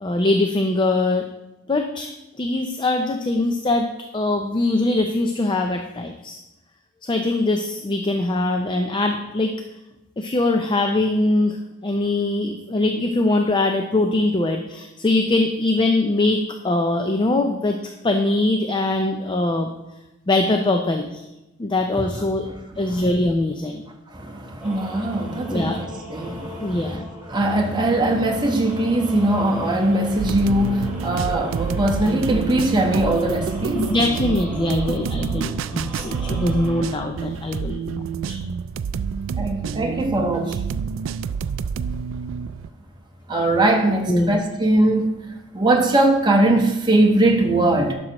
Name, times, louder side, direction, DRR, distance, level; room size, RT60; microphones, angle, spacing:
voice 1, 0.0-1.2 1.7-2.1 2.4-6.4 7.0-9.5 10.2-11.6 11.8-17.8 18.0-19.7 20.3-21.2 21.6-22.5 22.8-23.9 25.5-25.8 26.6-27.1 33.7-38.4 44.1-44.4, left 2 dB, 25° left, 0.5 m, -22 dB
voice 2, 22.7-23.1 24.1-27.0 27.3-33.9 39.4-40.6 43.3-45.1 45.5-47.9, right 1 dB, 20° right, 1.1 m, -20 dB
sound 1, 24.6-36.9, equal, 5° right, 2.7 m, -40 dB
sound 2, 30.2-42.7, right 6 dB, 70° right, 0.3 m, -28 dB
11.5 x 6.2 x 3.0 m
head